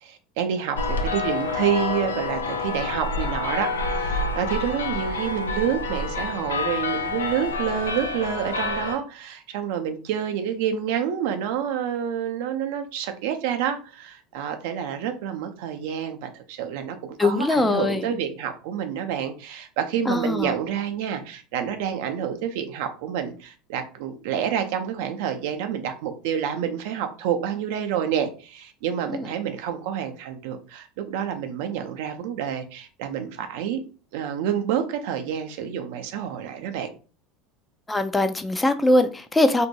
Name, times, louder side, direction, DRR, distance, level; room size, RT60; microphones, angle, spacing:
voice 1, 0.0-33.8 34.1-36.9, right 8 dB, 70° right, 6 dB, 0.5 m, -28 dB
sound 1, 0.8-9.0, left 3 dB, 90° left, 0.3 m, -28 dB
voice 2, 17.2-18.1 20.1-20.5 29.1-29.3 37.9-39.7, left 2 dB, 15° left, 9 dB, 0.4 m, -21 dB
2.6 x 2.1 x 2.7 m, 0.35 s
hypercardioid pair, 80°, 0 cm